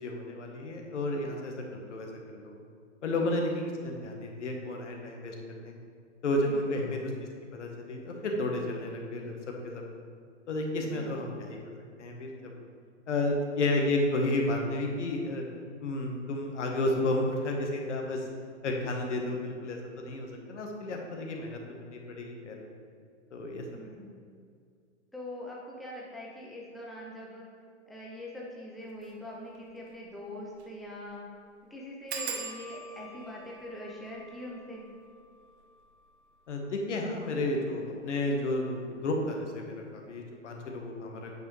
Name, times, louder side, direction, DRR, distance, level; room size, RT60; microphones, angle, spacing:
voice 1, 0.0-2.5 3.0-5.7 6.2-7.1 7.5-9.4 9.6-9.8 10.5-11.6 12.0-12.5 13.1-15.4 15.8-18.3 18.6-22.7 23.3-23.9 36.5-41.3, left 1 dB, 70° left, 2 dB, 1.4 m, -32 dB
voice 2, 6.5-6.9 10.8-11.4 23.7-24.2 25.1-27.5 27.9-31.2 31.7-34.8, left 1 dB, ahead, -4 dB, 0.7 m, -43 dB
sound 1, 28.9-29.1 29.5-29.6 29.9-30.0 30.5-30.8 31.0-31.1 32.1-37.4 38.1-38.6 38.9-39.2 39.5-39.6, right 5 dB, 60° right, 1.1 m, -44 dB
8.6 x 5.3 x 3.3 m, 2.2 s
hypercardioid pair, 125°, 37 cm